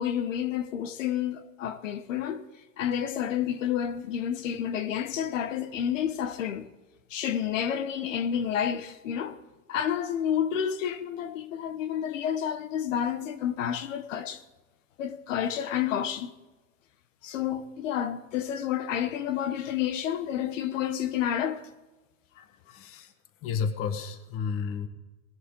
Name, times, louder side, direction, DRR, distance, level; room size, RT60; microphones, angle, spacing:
voice 1, 0.0-2.4 2.8-6.7 7.1-9.4 9.7-14.4 15.0-16.3 17.2-21.7 22.4-22.5, left 9 dB, 85° left, 1.1 m, -30 dB
voice 2, 22.7-23.1 23.4-24.9, left 6 dB, 35° left, 1.4 m, -31 dB
19.5 x 10.5 x 3.8 m
supercardioid pair, 140°, 37 cm